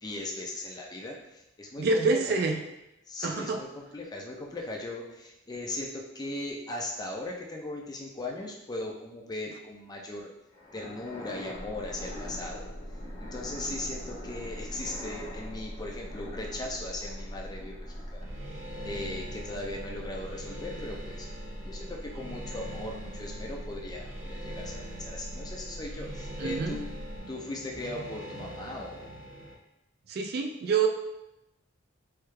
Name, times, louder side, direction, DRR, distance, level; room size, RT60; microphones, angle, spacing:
voice 1, 0.0-2.4 3.1-10.3 10.7-12.7 13.2-18.3 18.8-21.3 21.6-26.9 27.3-29.1, left 2 dB, 20° left, -1 dB, 0.5 m, -38 dB
voice 2, 1.8-2.6 3.2-3.6 26.4-26.8 30.1-30.9, right 4 dB, 55° right, 3 dB, 0.4 m, -26 dB
sound 1, 10.5-18.5, left 1 dB, 90° left, 1.0 m, -45 dB
sound 2, 11.5-27.2, equal, 55° left, 1.2 m, -42 dB
sound 3, 18.2-29.5, equal, 90° right, 0.7 m, -44 dB
3.2 x 2.3 x 3.2 m, 0.88 s
head